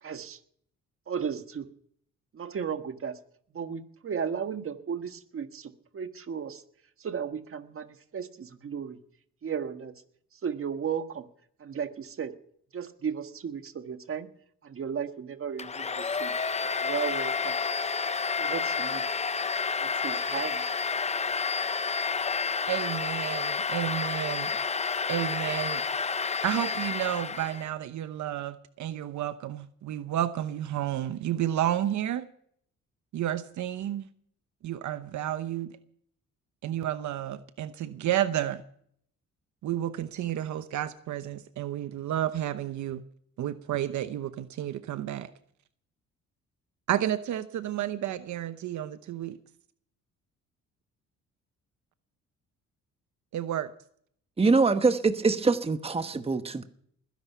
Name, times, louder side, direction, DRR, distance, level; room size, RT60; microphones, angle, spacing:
voice 1, 0.0-0.4 1.1-1.6 2.3-3.2 3.5-6.6 7.0-9.0 9.4-9.9 10.3-11.3 11.6-12.3 12.7-14.3 14.6-16.3 16.8-17.6 18.4-19.1 19.8-20.6, right 7 dB, 45° right, 1.6 m, -35 dB
Domestic sounds home sounds, 15.6-27.7, left 5 dB, 20° left, 0.7 m, -30 dB
voice 2, 22.7-24.5 25.1-25.8 26.4-32.3 33.1-34.1 34.6-35.8 36.6-38.6 39.6-43.0 43.4-45.3 46.9-49.4 53.3-53.7, right 12 dB, 70° right, 0.9 m, -31 dB
voice 3, 54.4-56.6, right 4 dB, 20° right, 1.1 m, -24 dB
20.5 x 10.5 x 5.7 m
cardioid pair, 90°, 30 cm